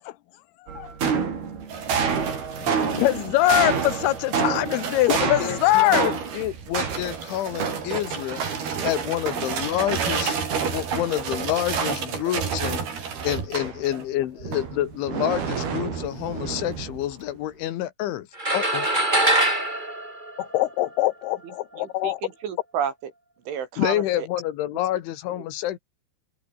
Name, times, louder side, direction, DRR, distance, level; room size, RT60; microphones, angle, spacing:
sound 1, 0.7-14.0 14.4-17.1, right 6 dB, 55° right, 6.4 m, -28 dB
voice 1, 2.6-6.2 20.4-22.2, left 17 dB, 75° left, 2.7 m, -23 dB
voice 2, 5.1-8.4 8.8-12.9 13.2-18.3 18.5-18.9 23.8-25.8, left 13 dB, 90° left, 4.1 m, -28 dB
sound 2, 18.4-21.0, right 1 dB, 10° right, 4.4 m, -23 dB
voice 3, 21.8-23.1 23.5-24.3, right 8 dB, 85° right, 6.0 m, -31 dB
omnidirectional pair, 5.3 m